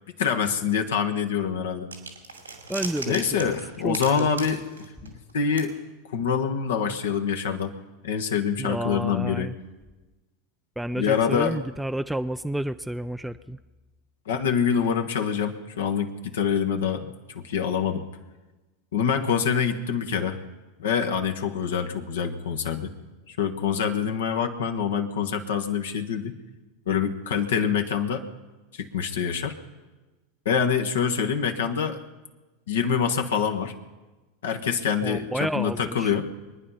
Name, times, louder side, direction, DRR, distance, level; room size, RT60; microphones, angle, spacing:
voice 1, 0.2-1.9 3.1-5.7 6.1-7.7 8.0-9.5 10.9-11.6 14.3-18.0 18.9-20.4 20.8-22.9 23.3-26.3 26.9-28.2 28.7-29.5 30.4-32.0 32.7-33.7 34.4-36.3, left 7 dB, 70° left, 6 dB, 1.2 m, -25 dB
sound 1, 1.9-5.3 5.6-5.7, right 4 dB, 90° right, 2.3 m, -37 dB
voice 2, 2.7-3.6 3.8-4.3 8.6-9.6 10.8-13.6 35.0-36.1, right 1 dB, 5° right, 9 dB, 0.4 m, -30 dB
23.5 x 9.8 x 5.6 m, 1.2 s
figure-of-eight pair, 85°, 0 cm